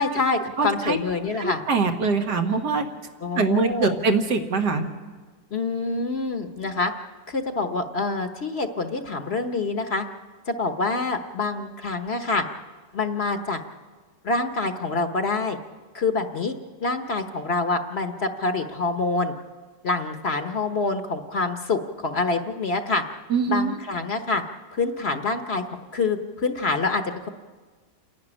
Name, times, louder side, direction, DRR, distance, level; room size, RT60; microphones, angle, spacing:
voice 1, 0.0-1.6 3.2-4.0 5.5-6.9 7.3-10.0 10.5-12.4 12.9-13.6 14.2-15.6 15.9-19.3 19.8-23.0 23.5-24.4 24.7-25.6 25.9-27.3, left 3 dB, 45° left, 7 dB, 1.1 m, -26 dB
voice 2, 0.6-1.0 1.4-2.9 3.3-4.9 23.3-23.7, right 4 dB, 80° right, 4 dB, 2.2 m, -23 dB
28.0 x 11.0 x 9.9 m, 1.4 s
omnidirectional pair, 1.7 m